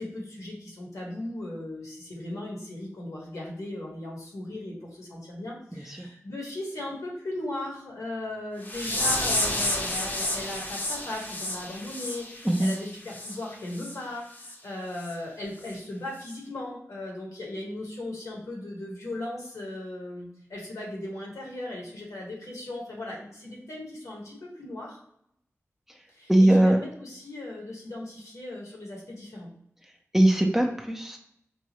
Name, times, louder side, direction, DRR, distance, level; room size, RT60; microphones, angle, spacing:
voice 1, 0.0-25.0 26.1-29.5, left 1 dB, 85° left, -2 dB, 1.2 m, -37 dB
sound 1, 8.6-13.4 13.7-14.0 14.4-14.5 15.0-15.1 15.6-15.7, left 1 dB, 35° left, 0.7 m, -30 dB
voice 2, 26.3-26.8 30.1-31.2, right 1 dB, 5° right, 2 dB, 0.5 m, -20 dB
4.7 x 2.1 x 2.9 m, 0.72 s
wide cardioid pair, 90°, 5 cm